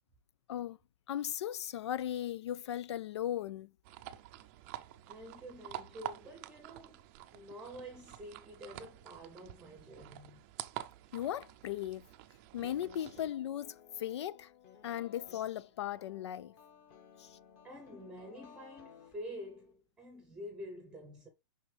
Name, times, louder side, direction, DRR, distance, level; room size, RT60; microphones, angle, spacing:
voice 1, 1.1-3.7 11.1-12.1 12.5-14.5 14.8-16.5 17.2-17.4, left 11 dB, 75° left, 0.4 m, -37 dB
sound 1, 3.8-13.3, right 14 dB, 30° right, 0.5 m, -48 dB
voice 2, 5.1-7.0 7.3-10.4 17.6-21.3, equal, 5° right, 0.8 m, -48 dB
sound 2, 12.6-19.7, left 7 dB, 30° left, 1.5 m, -58 dB
6.2 x 5.4 x 3.4 m
supercardioid pair, 170°, 14 cm